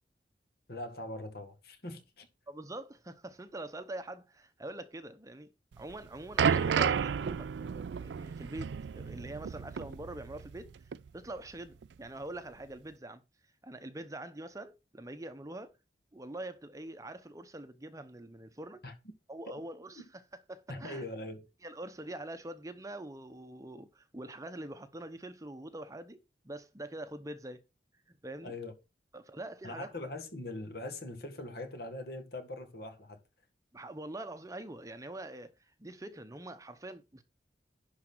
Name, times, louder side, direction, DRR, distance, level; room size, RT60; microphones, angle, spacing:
voice 1, 0.7-2.3 18.8-18.9 19.5-19.6 20.0-20.1 20.7-21.5 28.4-28.7 29.6-33.2, left 2 dB, 60° left, 1.8 m, -42 dB
voice 2, 2.5-5.5 5.8-13.2 13.6-15.7 16.1-18.8 19.3-20.0 20.5-21.0 21.6-27.6 28.1-28.5 29.1-30.1 33.7-35.5 35.8-37.2, right 1 dB, 20° right, 0.8 m, -44 dB
sound 1, 5.8-10.7 10.9-11.1 11.8-11.9, right 6 dB, 85° right, 0.4 m, -32 dB
11.0 x 4.2 x 6.1 m
head